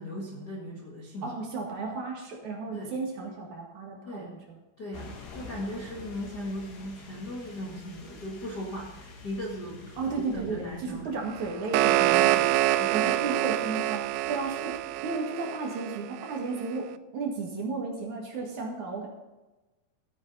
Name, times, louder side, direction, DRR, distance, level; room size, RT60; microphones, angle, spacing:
voice 1, 0.0-1.3 2.7-3.0 4.0-4.3 4.8-11.1 11.9-12.0 12.8-13.4, equal, 90° left, -4 dB, 0.9 m, -38 dB
voice 2, 1.2-4.6 10.0-12.7 12.9-19.1, right 4 dB, 50° right, 0 dB, 2.7 m, -34 dB
sound 1, 4.9-15.1, left 3 dB, 75° left, 4.1 m, -49 dB
sound 2, 11.3-16.4, right 15 dB, 85° right, 2.3 m, -26 dB
15.0 x 9.5 x 4.1 m, 1.1 s
omnidirectional pair, 5.1 m